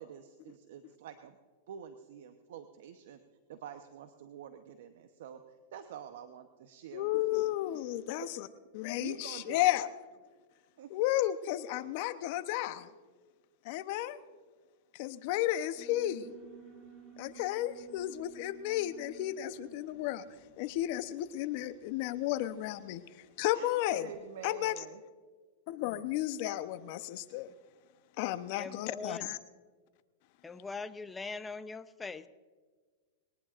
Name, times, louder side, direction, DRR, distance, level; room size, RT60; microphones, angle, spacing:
voice 1, 0.0-1.4 1.7-3.2 3.5-7.5 8.2-8.3 9.0-9.7 10.8-10.9 23.5-25.0, right 8 dB, 70° right, 8 dB, 0.9 m, -48 dB
voice 2, 6.9-8.5 8.7-9.9 10.9-12.9 13.6-14.2 14.9-16.3 17.2-20.2 20.6-24.1 24.4-24.8 25.7-27.5 28.2-29.4, left 14 dB, 55° left, 11 dB, 0.9 m, -33 dB
Alarm, 15.7-22.9, right 6 dB, 15° right, 2.9 m, -55 dB
voice 3, 28.6-29.3 30.4-32.3, left 3 dB, 10° left, 11 dB, 0.7 m, -41 dB
21.5 x 19.0 x 2.6 m, 1.5 s
hypercardioid pair, 120°, 0 cm